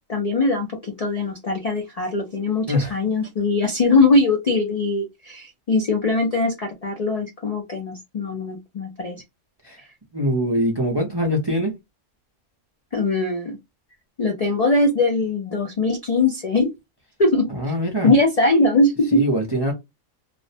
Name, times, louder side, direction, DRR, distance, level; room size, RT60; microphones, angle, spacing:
voice 1, 0.1-9.2 9.8-9.9 12.9-13.6 14.2-16.7 17.2-17.7 18.0-19.2, left 2 dB, 70° left, 0.3 m, -21 dB
voice 2, 10.1-11.7 17.5-18.1 19.1-19.7, equal, 35° right, 0.4 m, -23 dB
2.4 x 2.0 x 2.6 m
omnidirectional pair, 1.4 m